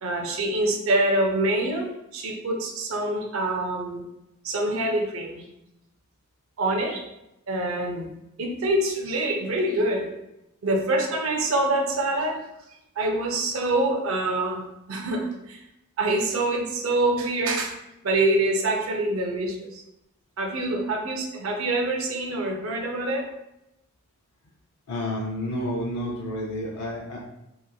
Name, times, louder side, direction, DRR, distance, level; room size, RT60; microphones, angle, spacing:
voice 1, 0.0-4.0 4.4-5.4 6.6-7.1 7.5-8.1 8.4-10.1 10.6-12.4 13.0-15.6 16.0-17.7 18.0-19.8 20.4-23.2, right 2 dB, 65° right, 2 dB, 0.5 m, -25 dB
voice 2, 24.9-27.3, left 1 dB, 80° left, -3 dB, 0.5 m, -30 dB
2.9 x 2.5 x 2.2 m, 0.87 s
head